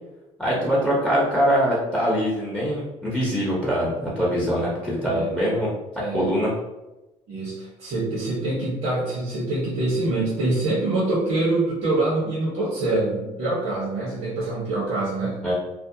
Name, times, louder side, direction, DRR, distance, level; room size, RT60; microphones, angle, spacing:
voice 1, 0.4-5.7 6.1-6.5 15.4-15.5, equal, 5° left, -6 dB, 0.7 m, -23 dB
voice 2, 5.0-5.3 6.0-6.4 7.3-15.4, right 2 dB, 75° right, -7 dB, 0.9 m, -25 dB
2.5 x 2.0 x 2.7 m, 1.0 s
cardioid pair, 95°, 12 cm